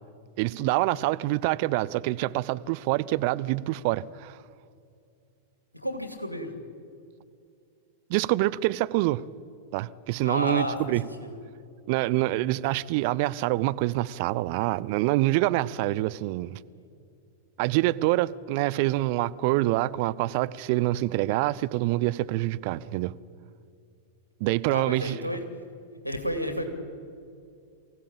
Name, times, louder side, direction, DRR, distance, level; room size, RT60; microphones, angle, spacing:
voice 1, 0.4-4.4 8.1-9.2 9.7-11.0 11.9-16.6 17.6-23.1 24.4-25.2, right 17 dB, 45° right, 0.5 m, -26 dB
voice 2, 5.8-6.5 10.2-10.8 11.2-11.3 24.7-25.4 26.0-26.7, equal, 90° left, 2.5 m, -31 dB
24.0 x 16.0 x 8.7 m
figure-of-eight pair, 95°, 0 cm